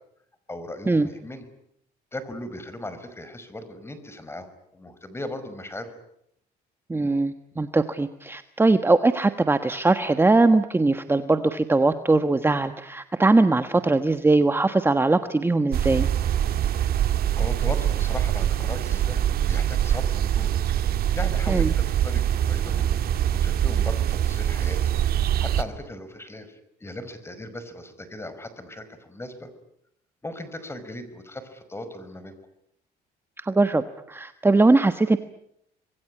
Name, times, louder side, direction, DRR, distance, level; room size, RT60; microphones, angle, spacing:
voice 1, 0.5-1.4 2.1-5.9 17.3-20.6 20.9-23.0 23.3-24.9 25.4-29.5 30.2-32.3, left 1 dB, 15° left, 12 dB, 5.2 m, -38 dB
voice 2, 6.9-16.1 21.5-21.7 33.4-35.2, right 3 dB, 15° right, 9 dB, 1.3 m, -21 dB
sound 1, 15.7-25.6, right 10 dB, 65° right, 2.3 m, -23 dB
26.5 x 21.5 x 9.8 m, 0.75 s
cardioid pair, 110°, 17 cm